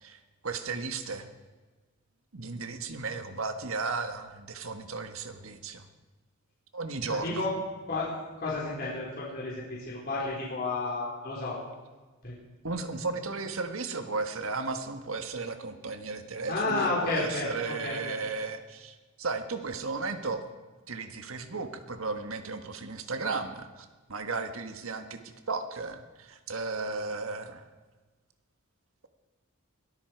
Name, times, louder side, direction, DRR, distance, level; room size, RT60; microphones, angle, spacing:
voice 1, 0.0-1.3 2.3-5.9 6.7-7.5 12.6-20.4 20.9-27.7, right 4 dB, 80° right, 7 dB, 1.5 m, -35 dB
voice 2, 7.1-7.5 7.9-8.1 8.4-11.6 12.2-12.3 16.5-18.2, left 3 dB, 45° left, -6 dB, 4.2 m, -31 dB
22.5 x 13.0 x 4.6 m, 1.3 s
head